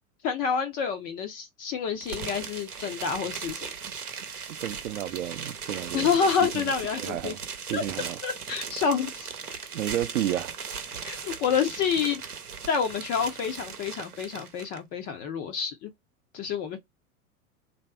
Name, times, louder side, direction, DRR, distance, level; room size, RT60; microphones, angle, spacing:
voice 1, 0.2-3.7 5.9-7.3 7.7-9.3 11.1-12.2 12.7-15.9 16.3-16.8, left 6 dB, 20° left, 0.4 m, -28 dB
sound 1, 2.0-14.8, right 6 dB, 85° right, 0.9 m, -38 dB
voice 2, 4.6-6.1 6.5-6.7 7.0-7.4 7.7-8.2 9.7-10.5, right 12 dB, 60° right, 0.6 m, -31 dB
3.2 x 2.7 x 4.2 m
figure-of-eight pair, 90°, 44 cm